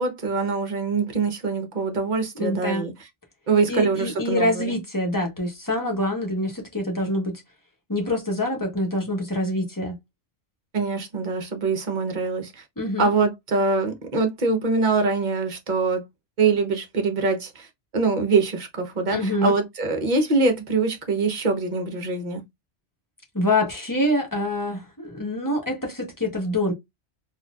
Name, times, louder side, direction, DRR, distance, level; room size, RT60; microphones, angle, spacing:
voice 1, 0.0-2.9 3.5-4.7 10.7-12.6 13.0-16.0 16.4-17.7 17.9-22.4, right 4 dB, 40° right, 0.9 m, -24 dB
voice 2, 2.3-2.9 3.7-7.4 7.9-10.0 12.8-13.1 19.1-19.6 23.3-26.7, left 1 dB, 15° left, 1.2 m, -25 dB
4.1 x 2.6 x 2.3 m
omnidirectional pair, 1.2 m